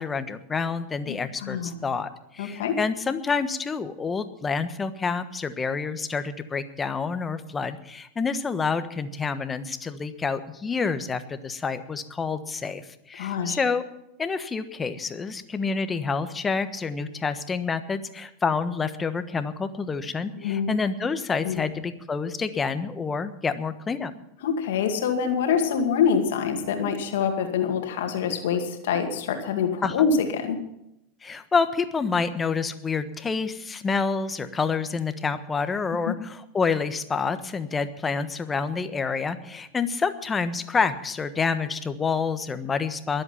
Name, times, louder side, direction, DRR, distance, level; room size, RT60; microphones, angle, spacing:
voice 1, 0.0-13.8 14.2-24.1 29.8-29.9 31.2-43.2, left 5 dB, 20° left, 11 dB, 1.3 m, -28 dB
voice 2, 1.1-1.8 2.4-2.8 13.2-13.6 20.3-20.7 21.4-21.6 24.4-30.6 36.0-36.1, left 6 dB, 70° left, 5 dB, 2.1 m, -25 dB
22.0 x 8.0 x 5.8 m, 0.82 s
hypercardioid pair, 95°, 0 cm